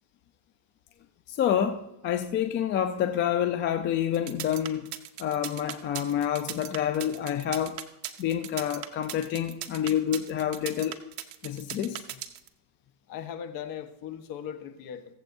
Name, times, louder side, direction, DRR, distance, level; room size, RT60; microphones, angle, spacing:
voice 1, 1.3-4.9 5.2-7.8 8.2-11.0 11.4-12.0, left 10 dB, 25° left, 8 dB, 0.5 m, -28 dB
sound 1, 4.1-12.5, right 12 dB, 35° right, 0.9 m, -38 dB
voice 2, 13.1-15.1, left 9 dB, 40° left, 8 dB, 1.3 m, -38 dB
22.5 x 7.7 x 2.7 m, 0.91 s
supercardioid pair, 125°, 50 cm